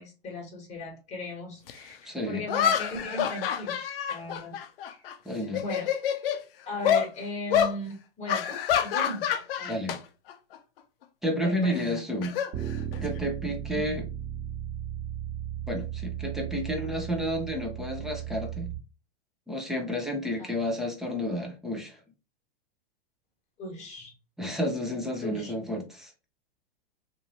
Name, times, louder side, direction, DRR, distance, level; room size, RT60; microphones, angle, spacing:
voice 1, 0.0-4.6 4.9-5.0 5.6-5.9 6.7-9.2 9.6-9.8 11.4-12.0 13.7-13.9 23.6-24.1 25.2-25.5, left 1 dB, 20° left, 0 dB, 1.4 m, -37 dB
sound 1, 1.7-1.8 2.5-5.1 5.5-6.4 6.8-7.1 7.5-7.8 8.3-10.0 10.3-10.6 11.8-13.2, left 9 dB, 65° left, 0.6 m, -27 dB
voice 2, 2.1-2.4 5.3-5.6 9.7-10.0 11.2-12.3 13.0-14.1 15.7-18.7 19.5-22.0 24.4-26.1, equal, ahead, 1 dB, 0.6 m, -31 dB
Bass guitar, 12.5-18.8, right 10 dB, 40° right, 1.4 m, -36 dB
2.7 x 2.6 x 3.0 m, 0.32 s
hypercardioid pair, 120°, 31 cm